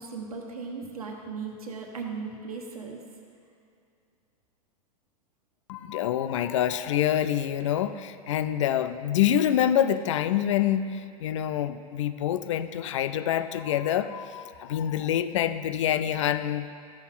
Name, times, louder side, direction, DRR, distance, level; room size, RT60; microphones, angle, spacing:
voice 1, 0.0-3.0, right 5 dB, 65° right, 1 dB, 1.4 m, -37 dB
voice 2, 5.7-16.7, left 10 dB, 50° left, 12 dB, 0.5 m, -26 dB
14.0 x 5.4 x 4.0 m, 2.5 s
figure-of-eight pair, 95°, 20 cm